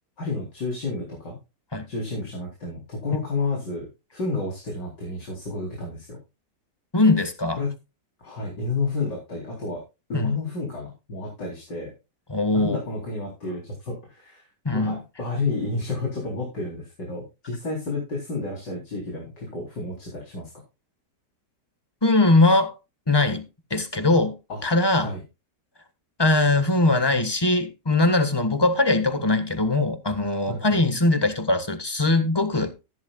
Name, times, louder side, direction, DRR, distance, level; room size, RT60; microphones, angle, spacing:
voice 1, 0.2-1.4 1.9-6.2 7.5-7.7 8.2-9.8 10.1-11.9 12.5-20.5 24.5-24.6 24.9-25.2 30.5-30.8, left 3 dB, 85° left, 4.5 m, -31 dB
voice 2, 6.9-7.6 10.1-10.3 12.3-12.8 14.6-15.0 22.0-22.8 23.1-25.1 26.2-32.7, left 2 dB, 15° left, 1.5 m, -21 dB
14.0 x 11.0 x 2.4 m
omnidirectional pair, 1.8 m